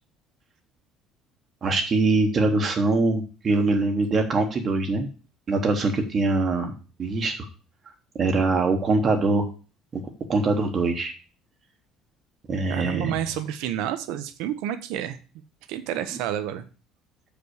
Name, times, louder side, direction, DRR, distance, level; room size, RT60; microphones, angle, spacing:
voice 1, 1.6-5.1 5.5-6.7 7.0-7.5 8.1-9.5 9.9-10.0 10.3-11.1 12.5-13.1 16.1-16.2, right 3 dB, 30° right, 4 dB, 1.0 m, -23 dB
voice 2, 12.7-15.2 15.7-16.6, right 11 dB, 80° right, 11 dB, 0.9 m, -29 dB
7.1 x 5.1 x 6.4 m, 0.35 s
cardioid pair, 170°, 0 cm